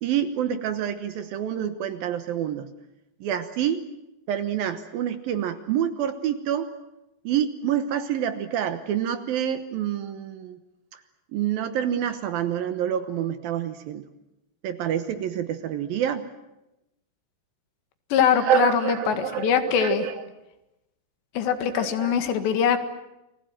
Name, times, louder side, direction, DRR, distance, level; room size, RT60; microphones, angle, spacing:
voice 1, 0.0-2.7 3.2-3.8 4.3-6.7 7.2-10.6 10.9-11.0 11.3-14.1 14.6-16.2 18.4-20.2 21.6-22.1, right 9 dB, 70° right, 10 dB, 2.5 m, -27 dB
voice 2, 18.1-20.0 21.4-22.8, left 8 dB, 80° left, 9 dB, 3.9 m, -23 dB
29.5 x 20.0 x 9.1 m, 0.90 s
omnidirectional pair, 5.1 m